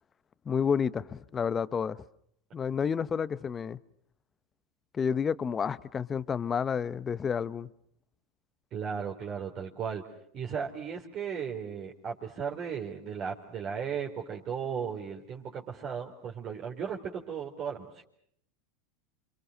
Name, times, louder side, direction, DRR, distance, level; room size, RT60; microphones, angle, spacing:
voice 1, 0.4-2.0 2.5-3.8 4.9-7.7, left 6 dB, 25° left, 1.0 m, -30 dB
voice 2, 8.7-10.0 10.3-18.0, right 7 dB, 40° right, 3.9 m, -36 dB
28.5 x 25.5 x 6.4 m
hypercardioid pair, 100°, 0 cm